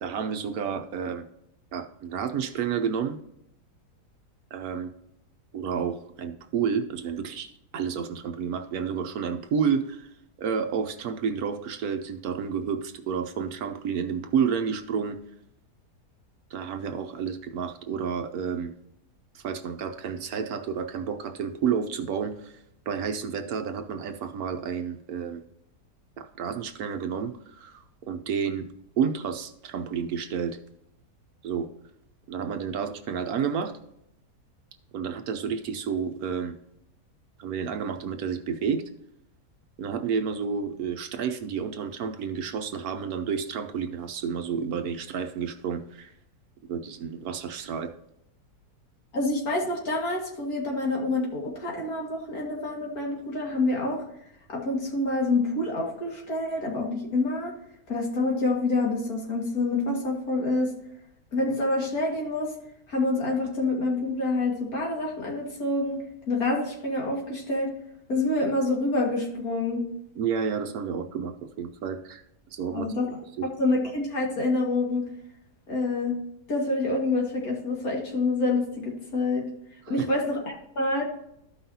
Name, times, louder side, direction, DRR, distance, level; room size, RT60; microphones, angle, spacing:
voice 1, 0.0-1.2 1.7-3.2 4.5-4.9 5.5-10.1 10.4-15.2 16.5-18.7 19.3-22.6 22.9-25.4 26.2-28.7 29.0-30.6 31.4-31.7 32.3-33.7 34.9-36.5 37.4-38.8 39.8-46.1 46.7-47.9 70.2-72.2 72.5-72.9 73.4-73.5 79.9-80.1, right 7 dB, 70° right, 7 dB, 1.1 m, -30 dB
voice 2, 49.1-54.0 54.5-57.5 57.9-60.7 61.3-62.5 62.9-66.0 66.3-67.7 68.1-69.8 72.7-73.1 73.6-75.0 75.7-76.1 76.5-79.5 79.9-81.0, left 2 dB, 60° left, -1 dB, 2.4 m, -27 dB
13.5 x 5.6 x 2.8 m, 0.78 s
omnidirectional pair, 1.8 m